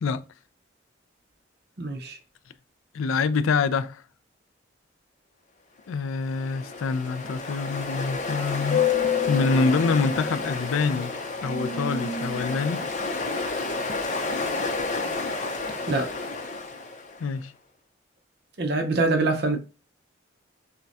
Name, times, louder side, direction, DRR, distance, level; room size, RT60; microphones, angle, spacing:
voice 1, 1.8-2.2 15.9-16.2 18.6-19.6, right 2 dB, 55° right, 0.8 m, -24 dB
voice 2, 2.9-4.0 5.9-11.1 11.4-12.9 17.2-17.5, left 4 dB, 90° left, 0.4 m, -26 dB
Ocean, 6.1-17.2, left 4 dB, 35° left, 0.6 m, -29 dB
5.6 x 2.2 x 2.6 m
head